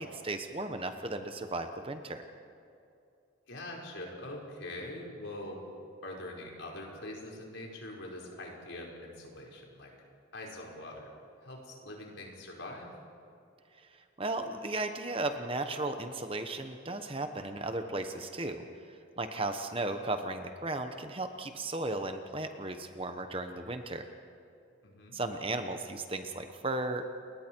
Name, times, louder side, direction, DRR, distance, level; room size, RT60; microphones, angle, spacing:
voice 1, 0.0-2.2 14.2-18.6 19.2-24.1 25.1-27.1, right 2 dB, 25° right, 7 dB, 1.1 m, -35 dB
voice 2, 3.5-5.6 6.0-9.9 10.3-11.1 11.4-12.9 24.8-25.2, left 1 dB, 70° left, -1 dB, 4.7 m, -43 dB
29.0 x 21.5 x 4.6 m, 2.6 s
head